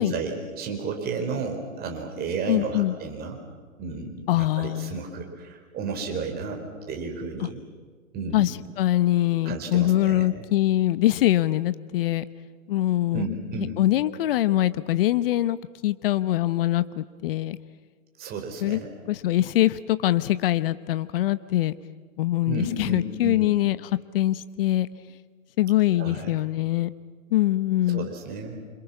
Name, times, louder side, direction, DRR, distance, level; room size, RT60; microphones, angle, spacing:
voice 1, 0.0-3.4 3.8-7.6 8.1-8.5 9.4-10.5 13.1-13.8 18.2-18.9 22.5-23.4 25.9-26.4 27.9-28.6, right 4 dB, 25° right, 3 dB, 4.6 m, -32 dB
voice 2, 2.5-2.9 4.3-5.0 7.4-7.5 8.3-8.5 8.8-12.2 12.7-13.2 13.6-15.6 15.8-17.6 18.6-18.8 19.1-21.7 22.2-23.8 24.1-24.9 25.6-26.9 27.3-28.1, left 14 dB, 45° left, 15 dB, 1.0 m, -23 dB
28.0 x 27.5 x 6.0 m, 1.5 s
hypercardioid pair, 125°, 40 cm